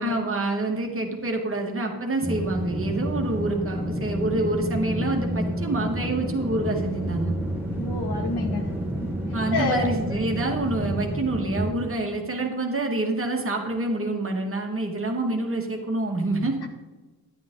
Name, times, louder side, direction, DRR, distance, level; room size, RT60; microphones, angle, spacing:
voice 1, 0.0-7.4 9.3-16.6, right 2 dB, 35° right, 2 dB, 2.0 m, -27 dB
sound 1, 2.2-11.7, equal, 5° right, 2.3 m, -29 dB
voice 2, 7.8-8.7 9.5-9.9, left 3 dB, 90° left, 3 dB, 2.2 m, -28 dB
13.0 x 10.5 x 3.9 m, 1.2 s
wide cardioid pair, 175°, 38 cm